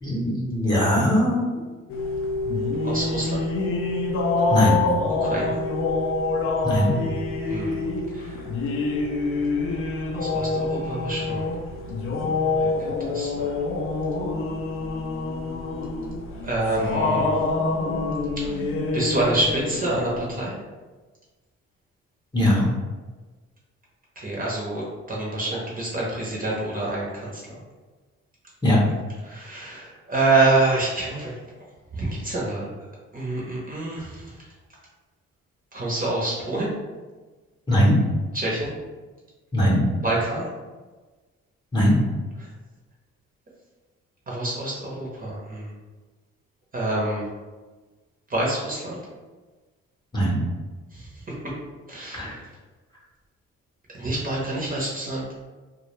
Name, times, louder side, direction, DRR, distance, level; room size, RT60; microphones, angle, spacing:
voice 1, 0.0-1.4 4.5-4.8 6.6-6.9 22.3-22.6 28.6-28.8 37.7-37.9 39.5-39.8 41.7-42.0 50.1-50.4 52.1-52.3, equal, 15° left, -6 dB, 0.7 m, -20 dB
sound 1, 1.9-20.5, left 3 dB, 45° left, 0.4 m, -26 dB
voice 2, 2.8-3.4 5.2-5.6 7.4-7.8 8.1-8.4 10.1-11.5 12.6-13.5 16.4-17.4 18.4-18.6 18.9-20.5 24.2-27.6 29.2-31.3 31.9-32.8 33.1-34.3 35.7-36.7 38.3-38.7 40.0-40.5 42.4-42.5 44.3-45.7 46.7-47.3 48.3-49.0 50.9-51.2 51.9-52.5 53.9-55.4, right 2 dB, 30° right, -4 dB, 0.7 m, -27 dB
2.1 x 2.1 x 3.0 m, 1.3 s
cardioid pair, 90°, 30 cm